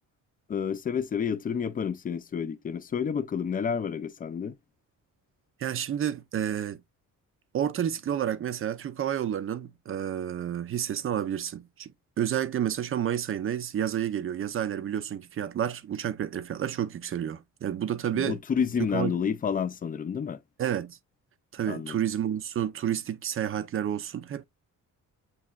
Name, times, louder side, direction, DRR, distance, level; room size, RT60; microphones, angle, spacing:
voice 1, 0.5-4.5 18.1-20.4 21.7-22.0, left 7 dB, 25° left, 0.4 m, -29 dB
voice 2, 5.6-6.8 7.5-11.9 12.2-18.4 18.9-19.1 20.6-21.0 21.5-24.4, right 10 dB, 40° right, 0.5 m, -30 dB
7.4 x 2.9 x 2.2 m
wide cardioid pair, 160°, 33 cm